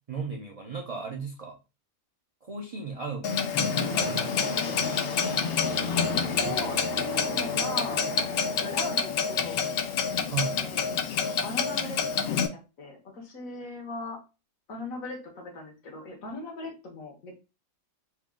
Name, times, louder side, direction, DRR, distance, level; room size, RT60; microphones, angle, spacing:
voice 1, 0.0-1.6 2.4-4.9 6.4-6.5 10.3-10.7, right 5 dB, 40° right, 1 dB, 0.5 m, -36 dB
Clock, 3.2-12.5, left 6 dB, 65° left, 0.6 m, -28 dB
sound 1, 3.7-10.2, right 3 dB, 60° right, 1.3 m, -40 dB
voice 2, 6.0-8.1 8.6-9.6 10.6-14.2 14.7-17.3, left 2 dB, 80° left, 1 dB, 1.6 m, -39 dB
4.4 x 2.3 x 3.6 m, 0.30 s
omnidirectional pair, 1.4 m